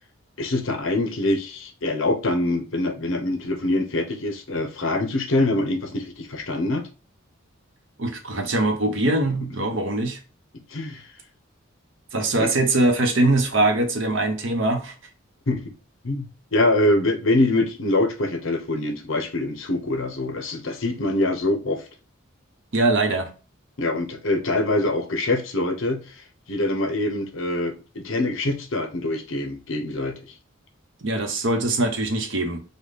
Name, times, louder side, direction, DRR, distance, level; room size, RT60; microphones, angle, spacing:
voice 1, 0.4-6.9 10.7-11.1 12.4-12.5 15.5-15.7 16.0-16.3 16.5-21.8 23.8-26.2 26.5-30.3, left 2 dB, 65° left, 0.8 m, -24 dB
voice 2, 8.0-10.2 12.1-14.9 22.7-23.3 31.0-32.6, right 2 dB, 60° right, 1.0 m, -22 dB
5.4 x 2.3 x 3.9 m
head